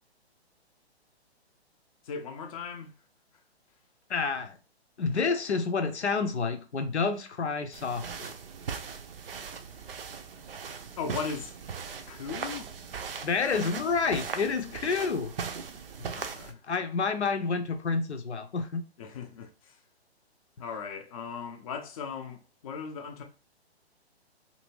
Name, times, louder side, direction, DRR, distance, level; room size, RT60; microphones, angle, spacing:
voice 1, 2.0-2.9 11.0-11.5 12.1-12.7 16.1-16.6 19.0-19.8 20.6-23.2, left 5 dB, 35° left, 0.5 m, -38 dB
voice 2, 4.1-4.6 5.0-8.3 13.2-15.3 16.7-18.8, left 4 dB, 85° left, 0.6 m, -29 dB
sound 1, 7.7-16.5, right 6 dB, 60° right, 0.5 m, -39 dB
2.7 x 2.7 x 3.0 m
figure-of-eight pair, 125°, 33 cm